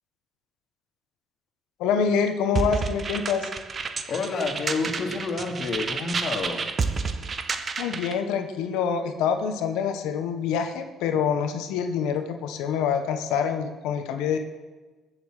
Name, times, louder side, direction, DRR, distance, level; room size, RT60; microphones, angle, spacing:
voice 1, 1.8-3.5 7.8-14.4, left 7 dB, 90° left, 7 dB, 1.3 m, -26 dB
sound 1, 2.6-8.2, right 4 dB, 35° right, 1.1 m, -30 dB
voice 2, 4.1-6.7, left 4 dB, 45° left, 1 dB, 2.9 m, -29 dB
20.5 x 7.2 x 6.6 m, 1.3 s
cardioid pair, 100°, 0 cm